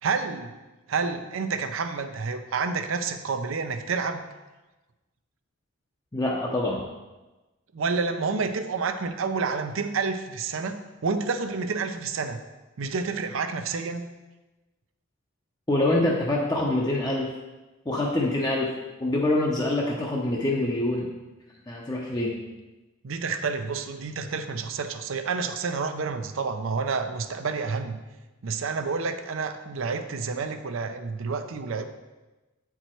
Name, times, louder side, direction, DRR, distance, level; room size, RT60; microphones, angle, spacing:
voice 1, 0.0-0.5 0.9-4.2 7.7-12.4 12.8-14.1 23.0-28.0 28.4-31.9, right 4 dB, 70° right, 8 dB, 0.5 m, -29 dB
voice 2, 6.1-6.8 15.7-17.3 17.9-21.1 21.7-22.4, left 1 dB, 20° left, -3 dB, 0.6 m, -25 dB
7.9 x 4.7 x 4.4 m, 1.1 s
head